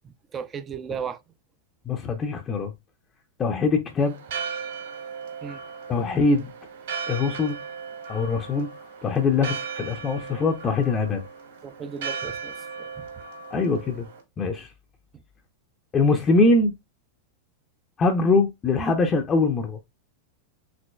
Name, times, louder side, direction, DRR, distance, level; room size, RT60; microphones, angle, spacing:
voice 1, 0.3-1.2 5.4-5.6 11.6-12.9, right 7 dB, 25° right, 0.5 m, -35 dB
voice 2, 1.9-2.7 3.4-4.1 5.9-6.5 7.1-7.6 8.1-8.7 9.0-11.2 13.5-14.1 14.4-14.7 15.9-16.7 18.0-19.8, left 3 dB, 25° left, 0.6 m, -22 dB
Church bell, 4.0-14.2, right 6 dB, 60° right, 2.0 m, -36 dB
5.1 x 2.8 x 2.3 m
figure-of-eight pair, 90°, 0 cm